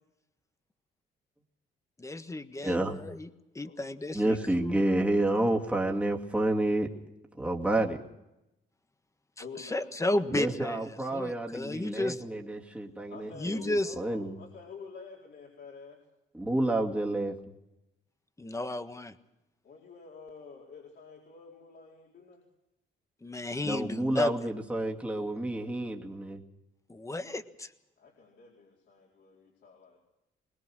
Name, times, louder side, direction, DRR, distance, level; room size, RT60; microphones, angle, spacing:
voice 1, 2.0-3.3 3.5-4.8 9.6-12.2 13.4-13.9 18.4-19.1 23.2-24.3 26.9-27.7, left 2 dB, 15° left, 10 dB, 1.5 m, -33 dB
voice 2, 2.6-3.0 4.1-6.9 7.4-8.0 10.3-14.3 16.3-17.4 23.6-26.4, right 1 dB, 5° right, 0 dB, 2.5 m, -29 dB
voice 3, 9.4-10.2 13.1-16.0 19.6-22.4 28.0-30.0, left 4 dB, 60° left, -3 dB, 4.5 m, -49 dB
22.5 x 20.0 x 6.3 m, 0.92 s
cardioid pair, 90°, 20 cm